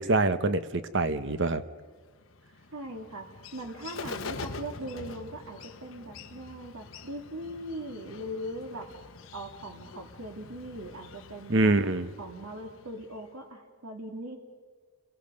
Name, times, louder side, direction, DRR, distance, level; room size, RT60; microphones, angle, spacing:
voice 1, 0.0-1.6 11.5-12.1, right 2 dB, 55° right, 11 dB, 1.0 m, -25 dB
Bird, 1.9-13.4, left 4 dB, 70° left, 1.2 m, -45 dB
voice 2, 2.7-3.3 3.5-8.9 9.3-11.7 12.2-14.4, right 1 dB, 85° right, 2 dB, 2.1 m, -40 dB
29.5 x 22.5 x 5.3 m, 1.5 s
head